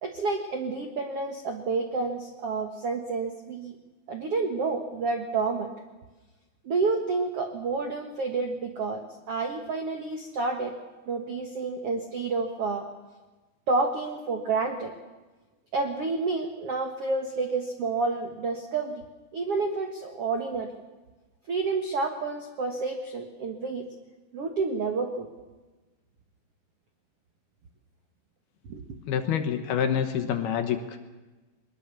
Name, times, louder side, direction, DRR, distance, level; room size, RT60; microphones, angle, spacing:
voice 1, 0.0-3.8 4.1-5.7 6.6-10.7 11.1-12.9 13.7-14.9 15.7-19.0 19.3-20.8 21.5-23.8 24.3-25.3 28.7-28.8, right 3 dB, 80° right, 4 dB, 1.3 m, -29 dB
voice 2, 29.1-31.0, left 8 dB, 70° left, 7 dB, 3.0 m, -27 dB
21.5 x 21.0 x 7.0 m, 1.2 s
omnidirectional pair, 5.1 m